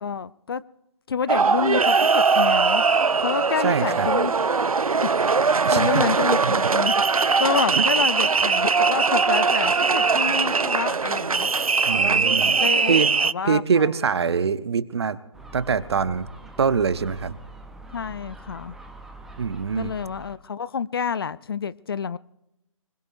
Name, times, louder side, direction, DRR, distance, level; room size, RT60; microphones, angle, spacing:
voice 1, 0.0-0.6 1.1-2.8 3.2-4.3 5.2-11.5 12.6-13.9 17.9-18.8 19.8-22.2, left 6 dB, 45° left, 0.5 m, -28 dB
sound 1, 1.3-13.3, right 4 dB, 90° right, 0.5 m, -21 dB
voice 2, 3.6-4.1 5.6-6.1 6.4-6.5 7.7-7.9 11.9-12.6 12.9-13.1 13.4-15.2 15.5-16.3 16.6-17.4 19.4-19.9, right 6 dB, 50° right, 1.0 m, -24 dB
Gull seagull, 15.3-20.4, right 2 dB, ahead, 0.7 m, -44 dB
25.0 x 21.0 x 2.6 m
figure-of-eight pair, 145°, 18 cm